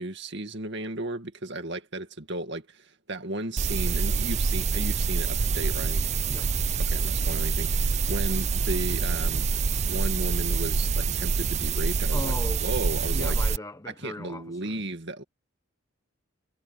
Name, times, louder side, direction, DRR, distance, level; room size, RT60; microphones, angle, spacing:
voice 1, 0.0-6.0 6.9-9.4 9.8-12.3 12.6-13.4 14.0-15.2, right 2 dB, 55° right, 2.2 m, -34 dB
sound 1, 3.6-13.6, right 4 dB, 30° right, 0.4 m, -26 dB
sound 2, 5.1-5.3 5.6-5.7 6.0-6.1 6.4-6.6 6.9-7.0 7.3-7.4 7.7-8.3 8.6-8.7 9.0-9.1 9.4-9.6 9.9-10.0 10.3-10.4 10.7-10.8 11.1-11.4, equal, 40° left, 2.3 m, -53 dB
voice 2, 6.3-6.7 12.1-12.6 13.1-14.8, left 1 dB, 15° left, 1.1 m, -38 dB
head